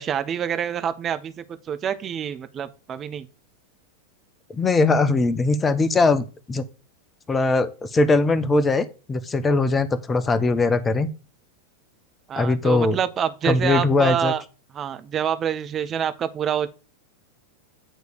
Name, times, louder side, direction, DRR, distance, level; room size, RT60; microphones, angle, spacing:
voice 1, 0.0-3.3 12.3-14.4 14.7-16.7, right 8 dB, 25° right, 0.7 m, -26 dB
voice 2, 4.5-6.6 7.3-11.1 12.3-13.0 13.4-14.3, left 3 dB, 15° left, 0.8 m, -20 dB
9.0 x 3.2 x 6.7 m
figure-of-eight pair, 90°, 0 cm